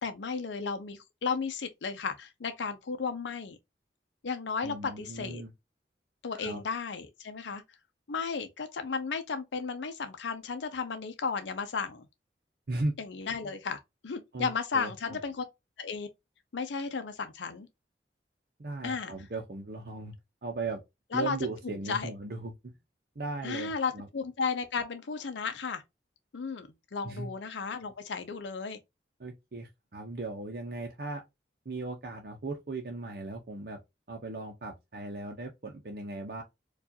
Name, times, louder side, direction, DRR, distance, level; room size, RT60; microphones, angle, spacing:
voice 1, 0.0-3.6 4.2-5.4 6.2-7.6 8.1-12.1 13.0-15.5 15.8-16.1 16.5-17.7 18.8-19.1 21.1-21.4 21.6-22.1 23.4-25.8 26.3-28.8, left 5 dB, 85° left, 0.6 m, -34 dB
voice 2, 4.6-5.5 6.3-6.6 12.7-12.9 14.3-14.5 14.7-15.2 18.6-20.1 20.4-20.8 21.1-22.7 23.2-24.1 27.0-27.3 29.2-31.2 31.7-33.8 34.1-36.4, right 3 dB, 55° right, 0.7 m, -37 dB
4.6 x 2.4 x 2.6 m
head